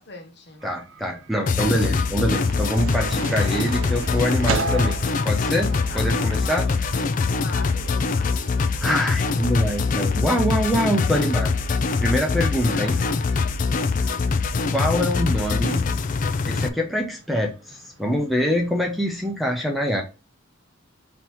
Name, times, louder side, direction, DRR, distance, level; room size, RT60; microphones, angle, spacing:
voice 1, 0.0-0.7 5.9-8.4 12.6-13.2 13.9-14.4, left 2 dB, 55° left, 1.0 m, -40 dB
voice 2, 0.6-5.0 5.2-6.7 8.8-11.5 12.0-13.0 14.7-15.8 16.5-20.0, equal, ahead, 0.7 m, -24 dB
sound 1, 0.6-19.3, right 2 dB, 65° right, 0.9 m, -41 dB
sound 2, 1.5-16.7, left 4 dB, 40° left, 0.4 m, -23 dB
sound 3, 2.3-6.1, right 6 dB, 80° right, 0.4 m, -34 dB
3.8 x 2.9 x 4.4 m
head